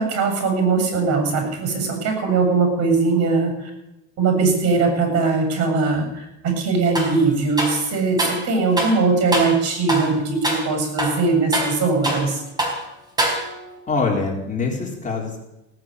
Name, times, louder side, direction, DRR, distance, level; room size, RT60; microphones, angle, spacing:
voice 1, 0.0-3.7 4.2-12.4, right 4 dB, 55° right, 5 dB, 7.7 m, -20 dB
sound 1, 6.9-7.2 7.6-8.4 8.8-9.0 9.3-9.6 9.9-10.1 10.4-10.7 11.0-12.3 12.6-12.8 13.2-13.7, right 1 dB, 15° right, 4.5 m, -24 dB
voice 2, 13.9-15.4, left 4 dB, 25° left, 0 dB, 3.8 m, -24 dB
17.5 x 9.5 x 8.2 m, 0.91 s
cardioid pair, 125°, 30 cm